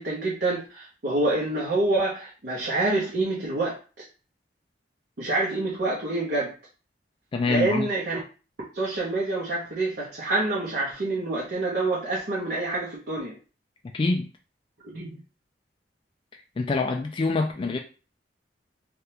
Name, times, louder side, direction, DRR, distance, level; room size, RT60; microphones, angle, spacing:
voice 1, 0.0-4.1 5.2-6.5 7.4-8.2 8.7-13.4 14.9-15.2, right 2 dB, 60° right, 0.8 m, -27 dB
voice 2, 7.3-7.9 13.9-14.3 16.6-17.8, left 3 dB, 30° left, 0.3 m, -25 dB
3.4 x 2.4 x 2.8 m
head